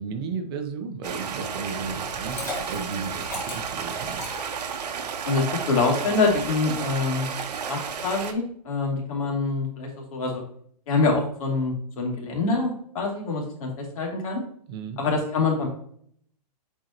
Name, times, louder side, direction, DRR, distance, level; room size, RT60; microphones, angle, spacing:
voice 1, 0.0-4.3 14.7-15.0, right 5 dB, 35° right, 6 dB, 0.8 m, -34 dB
Stream, 1.0-8.3, right 6 dB, 75° right, 1.1 m, -32 dB
Liquid, 2.0-5.1, left 1 dB, 10° left, 1.4 m, -37 dB
voice 2, 5.2-7.3 7.7-10.4 10.9-14.4 15.0-15.7, left 3 dB, 55° left, 0 dB, 2.5 m, -25 dB
7.7 x 4.6 x 2.9 m, 0.63 s
hypercardioid pair, 160°, 21 cm